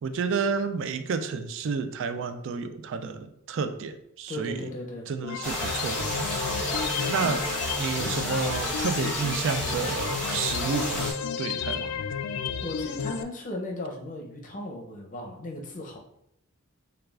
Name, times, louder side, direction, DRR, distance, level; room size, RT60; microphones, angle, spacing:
voice 1, 0.0-4.6 5.1-7.5 7.8-12.0, right 5 dB, 60° right, 9 dB, 0.3 m, -31 dB
voice 2, 4.3-5.1 6.5-6.8 12.6-16.0, left 1 dB, 35° left, 1 dB, 0.6 m, -36 dB
sound 1, 5.2-13.2, left 7 dB, 90° left, 0.3 m, -32 dB
sound 2, 5.4-11.1, equal, 5° left, 1.0 m, -31 dB
6.3 x 2.3 x 2.4 m, 0.78 s
head